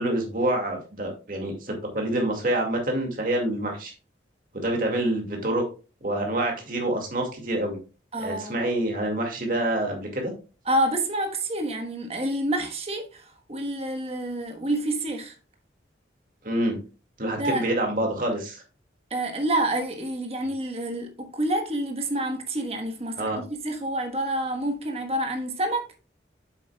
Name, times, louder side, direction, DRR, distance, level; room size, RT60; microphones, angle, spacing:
voice 1, 0.0-3.9 4.5-5.6 6.0-7.8 8.2-10.3 16.4-16.8 17.2-18.6 23.2-23.4, right 1 dB, 50° right, 2.2 m, -27 dB
voice 2, 8.1-8.6 10.7-15.3 17.4-17.7 19.1-25.8, right 1 dB, 35° right, 1.3 m, -28 dB
8.3 x 7.5 x 2.3 m
head